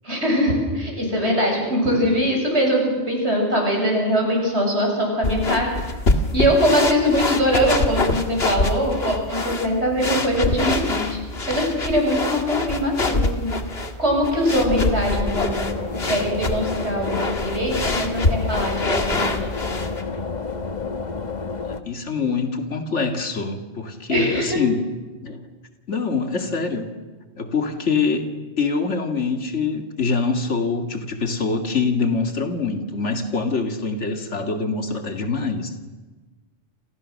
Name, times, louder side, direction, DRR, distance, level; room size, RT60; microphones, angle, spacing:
voice 1, 0.0-5.7 6.3-11.2 11.5-13.5 14.0-15.7 16.0-19.4 24.1-24.6, equal, 65° right, 0 dB, 7.8 m, -22 dB
sound 1, 5.2-20.0, left 2 dB, 55° left, 2.3 m, -25 dB
sound 2, 14.5-21.8, left 4 dB, 40° left, 1.5 m, -29 dB
voice 2, 21.9-24.8 25.2-25.5 25.9-26.9 27.4-28.3 28.6-35.7, left 4 dB, 75° left, 5 dB, 2.6 m, -24 dB
29.0 x 28.0 x 6.5 m, 1.3 s
omnidirectional pair, 1.2 m